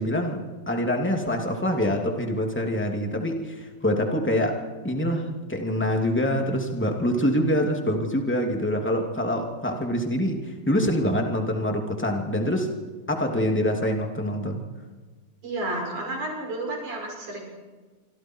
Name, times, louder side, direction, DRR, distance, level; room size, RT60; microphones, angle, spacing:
voice 1, 0.0-12.7 13.1-14.6, equal, 5° left, 2 dB, 2.3 m, -25 dB
voice 2, 15.4-17.4, right 2 dB, 65° right, 0 dB, 8.4 m, -31 dB
27.0 x 25.5 x 4.7 m, 1.4 s
omnidirectional pair, 3.7 m